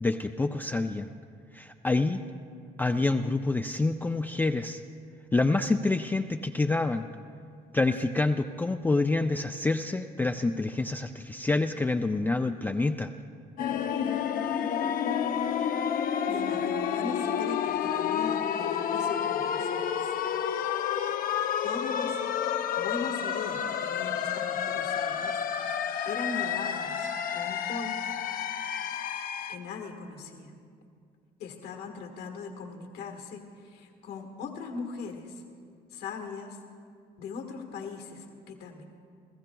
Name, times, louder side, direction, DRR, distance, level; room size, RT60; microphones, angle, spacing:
voice 1, 0.0-1.1 1.5-2.2 2.8-4.8 5.3-7.1 7.7-13.1, left 3 dB, 10° left, 5 dB, 0.3 m, -27 dB
sound 1, 13.6-29.6, left 8 dB, 55° left, 0.6 m, -30 dB
voice 2, 16.2-20.1 21.6-22.2 22.8-25.4 26.0-28.0 29.5-30.5 31.4-35.4 35.9-36.6 37.2-38.8, left 4 dB, 75° left, 4 dB, 1.5 m, -39 dB
29.5 x 15.0 x 2.3 m, 2.3 s
cardioid pair, 110°, 17 cm